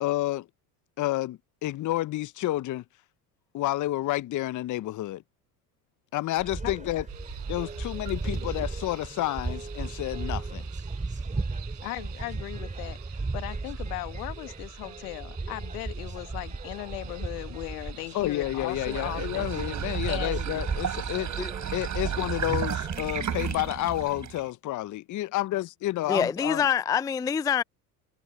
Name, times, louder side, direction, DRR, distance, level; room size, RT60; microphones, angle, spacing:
voice 1, 0.0-0.5 1.0-2.8 3.5-5.2 6.1-7.0 7.5-10.7 18.1-21.3 21.7-26.6, left 16 dB, 40° left, 0.8 m, -30 dB
sound 1, 6.4-23.7, right 3 dB, 15° right, 3.7 m, -36 dB
sound 2, 7.1-21.2, right 14 dB, 80° right, 4.9 m, -50 dB
voice 2, 11.8-19.5 20.0-20.5, left 22 dB, 75° left, 1.5 m, -38 dB
sound 3, 18.5-24.5, right 8 dB, 40° right, 3.7 m, -33 dB
voice 3, 26.1-27.6, left 7 dB, 10° left, 0.4 m, -25 dB
hypercardioid pair, 65°, 47 cm